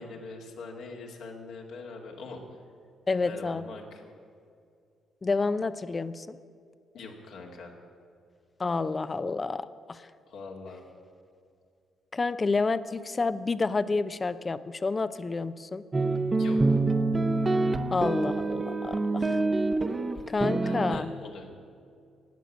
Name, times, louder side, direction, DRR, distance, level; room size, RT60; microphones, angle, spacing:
voice 1, 0.0-2.4 3.2-4.0 6.9-7.7 10.3-10.8 16.3-16.6 20.6-21.5, left 3 dB, 75° left, 0 dB, 2.2 m, -42 dB
voice 2, 3.1-3.7 5.2-6.4 8.6-10.1 12.1-15.8 17.9-19.4 20.3-21.1, left 3 dB, 35° left, 14 dB, 0.7 m, -29 dB
sound 1, 15.9-21.0, right 3 dB, 30° right, 1.0 m, -26 dB
13.5 x 9.1 x 8.5 m, 2.3 s
hypercardioid pair, 50°, 0 cm